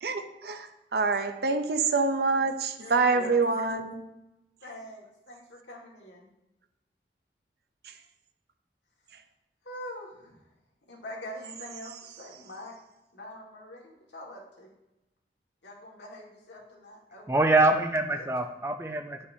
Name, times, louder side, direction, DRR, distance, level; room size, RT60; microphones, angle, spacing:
voice 1, 0.0-4.0 7.8-7.9, right 4 dB, 60° right, 7 dB, 0.6 m, -26 dB
voice 2, 2.8-3.3 4.6-6.3 9.6-10.4 10.9-12.8 13.1-14.7 15.6-17.3 18.1-18.3, left 1 dB, 75° left, -2 dB, 1.8 m, -44 dB
voice 3, 17.3-19.3, right 2 dB, 15° right, 7 dB, 0.4 m, -24 dB
9.9 x 5.4 x 2.7 m, 0.95 s
head